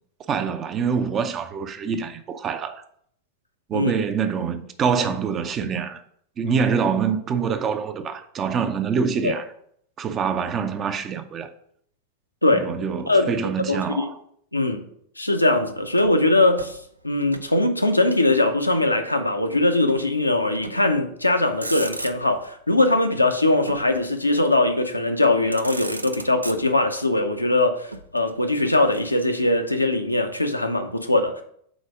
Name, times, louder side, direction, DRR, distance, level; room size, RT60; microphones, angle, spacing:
voice 1, 0.3-2.8 3.7-6.0 6.4-9.4 10.0-11.5 12.5-14.1, right 6 dB, 25° right, 0.5 m, -25 dB
voice 2, 13.7-14.1 14.5-14.8 15.2-16.8 17.0-31.4, left 2 dB, 85° left, 0.6 m, -21 dB
Motor vehicle (road), 15.9-17.5 17.8-18.9 19.9-20.1 20.5-21.0 21.4-22.5 23.7-24.7 25.2-25.3 25.5-27.0 27.9-29.5, right 2 dB, 85° right, 0.4 m, -37 dB
5.1 x 4.0 x 4.8 m
figure-of-eight pair, 90°, 0 cm